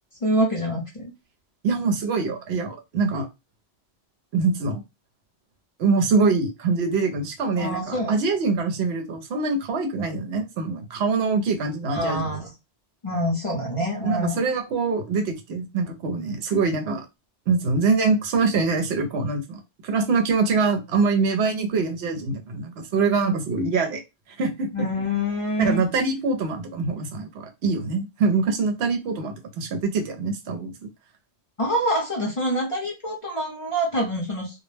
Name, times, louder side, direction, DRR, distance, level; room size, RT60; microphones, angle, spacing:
voice 1, 0.2-1.1 7.6-8.2 11.9-12.5 13.0-14.5 24.7-25.8 31.6-34.6, equal, 35° left, 0.6 m, -26 dB
voice 2, 1.6-3.3 4.3-4.8 5.8-12.3 14.0-17.1 17.5-24.0 24.4-24.9 25.6-30.7, right 4 dB, 70° right, 0.8 m, -24 dB
2.2 x 2.0 x 3.1 m
omnidirectional pair, 1.2 m